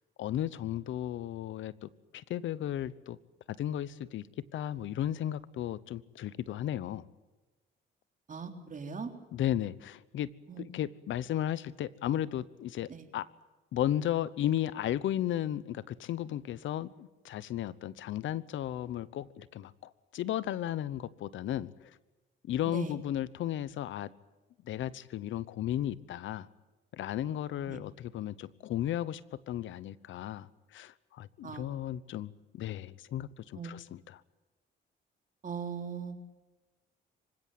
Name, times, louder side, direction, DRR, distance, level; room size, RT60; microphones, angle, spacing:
voice 1, 0.2-3.2 3.5-4.3 4.5-7.1 9.3-10.3 10.6-13.3 13.7-22.0 22.5-24.1 24.6-26.5 26.9-34.2, left 12 dB, 75° left, 18 dB, 1.0 m, -35 dB
voice 2, 8.3-9.1 10.5-10.6 12.9-13.0 22.7-22.9 27.7-27.8 31.4-31.7 33.6-33.7 35.4-36.4, right 6 dB, 40° right, 5 dB, 3.5 m, -40 dB
26.0 x 16.5 x 9.3 m, 1.2 s
cardioid pair, 90°, 20 cm